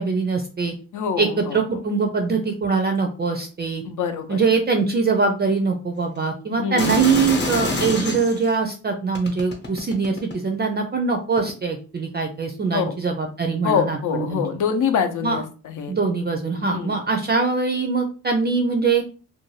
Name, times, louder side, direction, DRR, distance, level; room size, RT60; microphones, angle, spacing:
voice 1, 0.0-0.7 1.2-3.8 4.3-14.4 15.2-15.4 15.9-19.0, right 4 dB, 30° right, 4 dB, 0.4 m, -22 dB
voice 2, 0.9-1.6 3.8-4.4 6.6-6.9 12.7-12.9 13.6-15.9 16.6-16.9, left 7 dB, 65° left, 7 dB, 0.6 m, -25 dB
sound 1, 6.8-8.5 9.1-10.5 11.4-11.5, left 2 dB, 35° left, 0.8 m, -26 dB
2.5 x 2.2 x 3.0 m, 0.36 s
cardioid pair, 95°, 33 cm